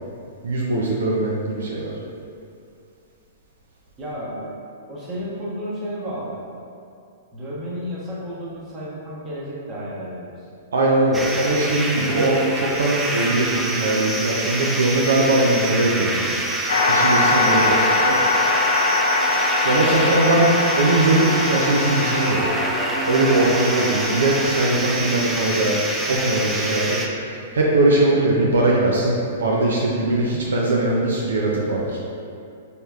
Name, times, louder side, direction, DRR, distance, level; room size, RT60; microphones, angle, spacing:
voice 1, 0.4-1.9 10.7-16.3 16.9-17.7 18.1-18.2 19.6-22.5 23.1-32.0, right 2 dB, 70° right, -3 dB, 0.4 m, -20 dB
voice 2, 4.0-4.6 4.9-6.5 7.3-10.3 17.5-18.0, equal, 25° right, -6 dB, 1.0 m, -32 dB
sound 1, 11.1-27.1, right 2 dB, 10° right, 0.4 m, -26 dB
sound 2, 16.7-24.5, left 2 dB, 65° left, 0.4 m, -22 dB
4.0 x 3.4 x 2.3 m, 2.6 s
figure-of-eight pair, 110°, 0 cm